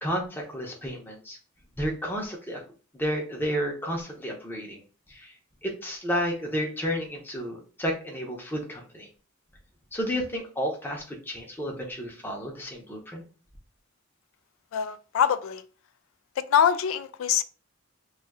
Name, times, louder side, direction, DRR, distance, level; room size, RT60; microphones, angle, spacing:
voice 1, 0.0-1.4 1.8-2.6 2.9-4.8 5.1-5.3 5.6-9.1 9.9-13.2, equal, 10° left, 0.7 m, -31 dB
voice 2, 14.7-15.6 16.4-17.4, left 8 dB, 75° left, 0.3 m, -24 dB
2.7 x 2.4 x 4.0 m
head